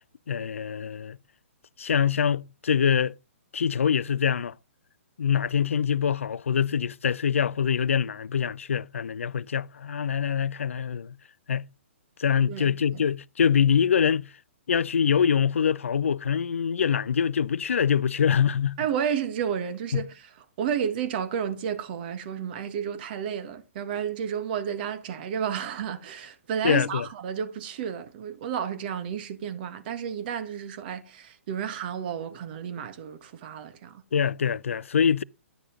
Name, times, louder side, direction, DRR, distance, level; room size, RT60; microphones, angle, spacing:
voice 1, 0.3-1.2 1.8-3.1 3.5-4.5 5.2-11.1 11.5-11.6 12.2-14.3 14.7-18.8 19.9-20.0 26.6-27.1 34.1-35.2, left 7 dB, 75° left, 0.4 m, -24 dB
voice 2, 12.4-13.0 18.8-20.3 20.6-34.0, right 8 dB, 45° right, 1.3 m, -31 dB
10.0 x 6.7 x 3.8 m
figure-of-eight pair, 125°, 7 cm